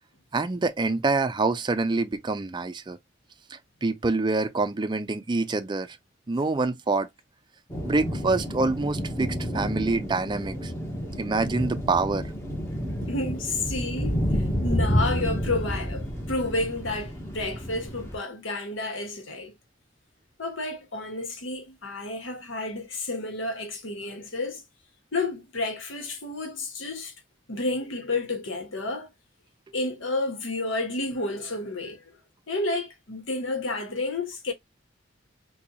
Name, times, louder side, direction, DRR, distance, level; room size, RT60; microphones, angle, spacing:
voice 1, 0.3-3.0 3.5-6.0 6.3-7.1 7.9-10.7 11.2-12.2, right 3 dB, 25° right, 0.4 m, -26 dB
sound 1, 7.7-18.2, equal, 15° left, 0.9 m, -30 dB
voice 2, 12.7-14.2 14.6-19.5 20.4-24.6 25.1-27.1 27.5-29.1 29.7-32.0 32.5-34.5, left 2 dB, 75° left, 1.1 m, -31 dB
4.0 x 2.3 x 2.9 m
head